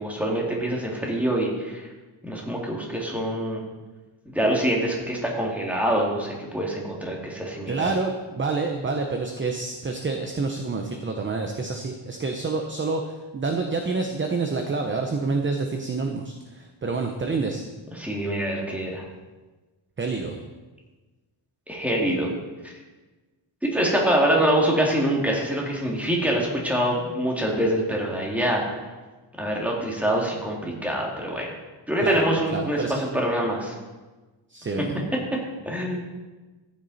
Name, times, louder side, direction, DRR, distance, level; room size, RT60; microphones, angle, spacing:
voice 1, 0.0-1.9 2.2-3.6 4.3-7.9 17.9-19.1 21.7-22.3 22.6-22.7 23.6-28.6 29.4-31.5 31.9-33.8 35.6-36.0, right 1 dB, 5° right, -2 dB, 2.3 m, -25 dB
voice 2, 7.7-17.7 20.0-20.4 32.0-32.2 32.5-32.9 34.5-34.9, right 3 dB, 25° right, 4 dB, 0.8 m, -28 dB
14.0 x 9.6 x 4.1 m, 1.2 s
wide cardioid pair, 160°, 48 cm